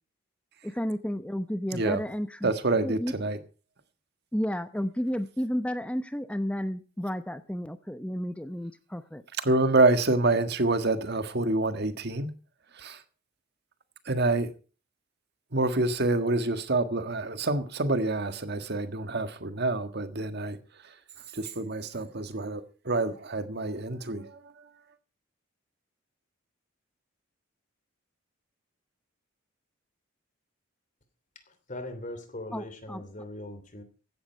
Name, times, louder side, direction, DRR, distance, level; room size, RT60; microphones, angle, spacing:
voice 1, 0.6-2.5 2.8-3.1 4.3-9.2 32.5-33.0, equal, 5° left, 0.8 m, -32 dB
voice 2, 2.4-3.4 9.4-12.3 12.8-13.0 14.1-14.5 15.5-20.6 21.3-24.3, right 2 dB, 55° right, 1.7 m, -27 dB
voice 3, 31.3-33.8, left 1 dB, 40° left, 2.9 m, -40 dB
16.0 x 12.0 x 4.5 m
head